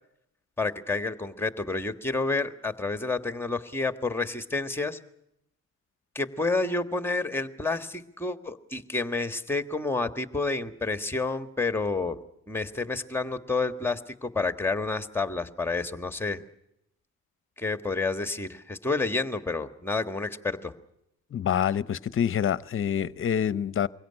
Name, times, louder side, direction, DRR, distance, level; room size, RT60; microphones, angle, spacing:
voice 1, 0.6-5.0 6.1-12.2 12.5-16.4 17.6-20.7, left 3 dB, 5° left, 1.6 m, -29 dB
voice 2, 21.3-23.9, left 9 dB, 45° left, 0.8 m, -26 dB
23.0 x 17.0 x 9.9 m
cardioid pair, 90°, 30 cm